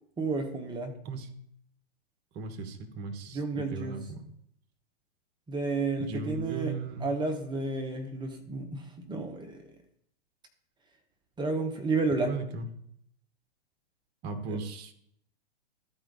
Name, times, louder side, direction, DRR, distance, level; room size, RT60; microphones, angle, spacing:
voice 1, 0.2-0.9 3.3-4.0 5.5-6.8 7.0-9.6 11.4-12.3 14.5-14.6, right 3 dB, 15° right, 4 dB, 1.0 m, -31 dB
voice 2, 2.3-4.2 6.0-7.1 12.2-12.7 14.2-14.9, right 4 dB, 30° right, 6 dB, 1.2 m, -37 dB
13.0 x 4.5 x 4.0 m, 0.72 s
hypercardioid pair, 110°, 32 cm